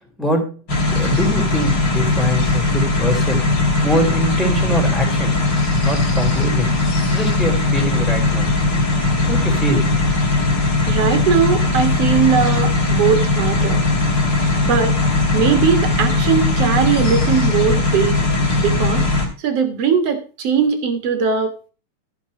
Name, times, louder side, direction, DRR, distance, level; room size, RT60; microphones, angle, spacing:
voice 1, 0.2-0.6 0.9-5.4 5.8-6.7 7.1-8.5 9.3-9.9, equal, ahead, 1 dB, 2.7 m, -23 dB
sound 1, 0.7-19.3, left 2 dB, 35° left, 3.3 m, -18 dB
voice 2, 10.8-13.8 14.6-14.9 15.3-18.2 18.6-19.1 19.4-21.7, right 7 dB, 55° right, 7 dB, 2.3 m, -19 dB
14.0 x 5.9 x 5.2 m, 0.36 s
omnidirectional pair, 3.6 m